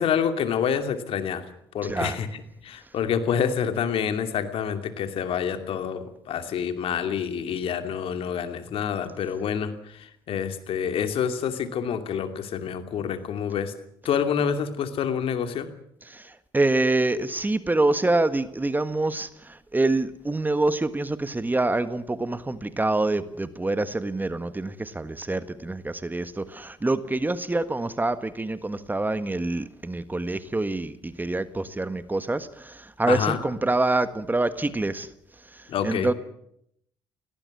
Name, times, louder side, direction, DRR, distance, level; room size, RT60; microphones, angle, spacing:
voice 1, 0.0-1.4 1.7-9.7 10.3-13.7 14.0-15.7 33.1-33.4 35.7-36.1, left 7 dB, 60° left, 8 dB, 2.7 m, -27 dB
voice 2, 1.8-2.2 16.0-35.1 35.8-36.1, right 2 dB, 15° right, 13 dB, 1.6 m, -26 dB
18.0 x 18.0 x 9.8 m, 0.75 s
hypercardioid pair, 55°, 11 cm